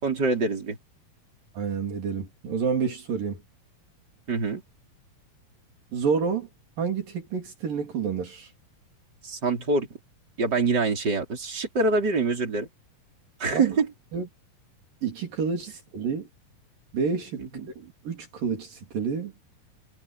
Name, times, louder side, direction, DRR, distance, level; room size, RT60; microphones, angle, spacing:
voice 1, 0.0-0.8 4.3-4.6 9.2-9.9 10.4-12.7 13.4-13.9 17.4-17.7, right 3 dB, 25° right, 5.4 m, -25 dB
voice 2, 1.5-3.4 5.9-6.5 6.8-8.5 13.5-13.8 14.1-14.3 15.0-16.3 16.9-17.4 17.8-19.3, right 6 dB, 70° right, 5.2 m, -29 dB
omnidirectional pair, 4.1 m